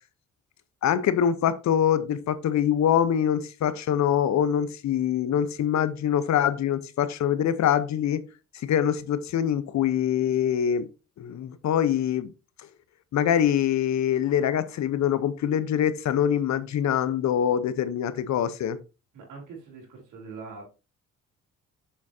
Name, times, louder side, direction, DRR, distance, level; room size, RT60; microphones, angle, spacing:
voice 1, 0.8-8.2 8.6-10.9 11.2-12.3 13.1-18.8, left 9 dB, 65° left, 0.9 m, -24 dB
voice 2, 19.1-20.6, right 4 dB, 85° right, 3.6 m, -42 dB
7.4 x 7.0 x 2.8 m
cardioid pair, 90°, 30 cm